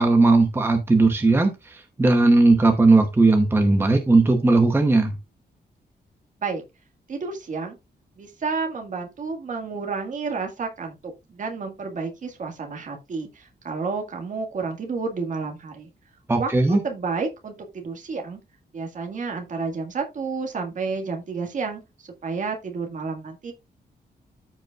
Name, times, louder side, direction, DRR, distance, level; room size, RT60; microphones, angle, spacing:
voice 1, 0.0-5.1 16.3-16.8, right 3 dB, 15° right, 5 dB, 0.9 m, -18 dB
voice 2, 7.1-7.8 8.2-15.9 16.4-18.4 18.7-23.5, right 4 dB, 45° right, 3 dB, 1.8 m, -30 dB
14.0 x 5.2 x 2.4 m, 0.24 s
wide cardioid pair, 180°, 17 cm